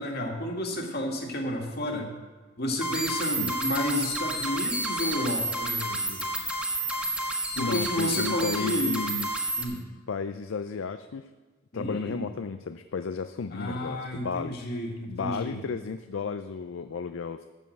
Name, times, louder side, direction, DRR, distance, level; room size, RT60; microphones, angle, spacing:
voice 1, 0.0-2.1 2.6-6.2 7.6-9.0 9.6-9.8 11.7-12.3 13.5-15.6, left 1 dB, 55° left, 1 dB, 1.9 m, -31 dB
sound 1, 2.8-9.7, right 1 dB, 5° right, 1.3 m, -30 dB
voice 2, 7.6-9.5 10.1-11.3 11.7-14.6 15.1-17.4, left 5 dB, 85° left, 9 dB, 0.4 m, -33 dB
12.5 x 5.4 x 7.8 m, 1.4 s
head